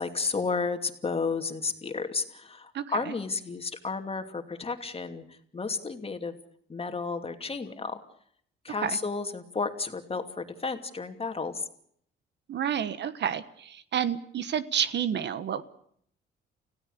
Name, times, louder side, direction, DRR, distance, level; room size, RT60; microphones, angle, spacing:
voice 1, 0.0-6.3 6.7-8.0 8.6-11.7, left 4 dB, 30° left, 6 dB, 2.7 m, -32 dB
voice 2, 2.7-3.1 8.8-9.0 12.5-15.6, right 9 dB, 65° right, 14 dB, 1.4 m, -30 dB
29.5 x 16.5 x 6.8 m, 0.65 s
cardioid pair, 90°, 20 cm